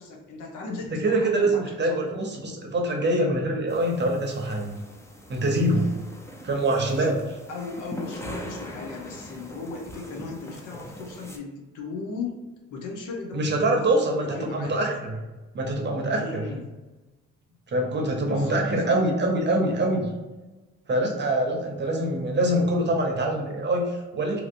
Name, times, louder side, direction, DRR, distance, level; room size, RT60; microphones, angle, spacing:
voice 1, 0.0-2.0 6.9-7.1 7.5-12.4 12.7-14.7 16.1-16.6 18.2-18.9, left 4 dB, 80° left, 1 dB, 0.8 m, -36 dB
voice 2, 0.9-4.7 5.3-5.9 6.4-7.2 13.3-15.2 15.5-16.4 17.7-20.1 20.9-24.4, right 1 dB, 35° right, 1 dB, 0.7 m, -24 dB
sound 1, 3.7-11.4, equal, 10° left, 0.4 m, -42 dB
2.8 x 2.7 x 2.5 m, 1.1 s
cardioid pair, 90°, 30 cm